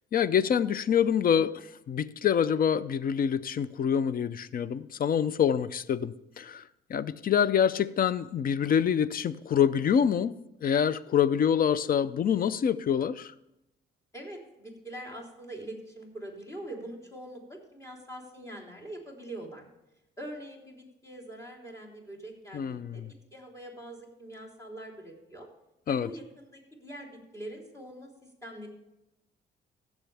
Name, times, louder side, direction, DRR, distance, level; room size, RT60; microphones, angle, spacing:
voice 1, 0.1-6.6 6.9-10.3 10.6-13.3 22.5-23.1 25.9-26.1, left 8 dB, 45° left, 0.5 m, -26 dB
voice 2, 14.1-19.6 20.2-23.0 23.3-25.5 25.9-28.7, right 1 dB, 15° left, 3.5 m, -43 dB
16.0 x 7.3 x 3.4 m
cardioid pair, 90°, 20 cm